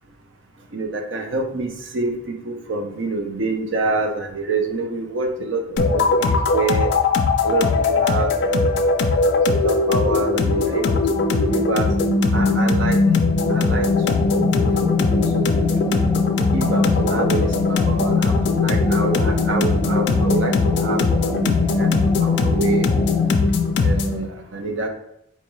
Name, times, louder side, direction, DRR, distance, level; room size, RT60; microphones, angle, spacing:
voice 1, 0.7-2.1 2.4-6.9 7.4-8.8 9.5-11.9 12.3-13.0 13.5-15.5 16.5-22.8 23.8-24.9, right 3 dB, 70° right, 4 dB, 0.5 m, -27 dB
sound 1, 5.8-24.2, left 3 dB, 60° left, 0.3 m, -19 dB
sound 2, 13.8-23.4, left 1 dB, 10° right, 0.4 m, -34 dB
4.2 x 2.3 x 3.0 m, 0.76 s
head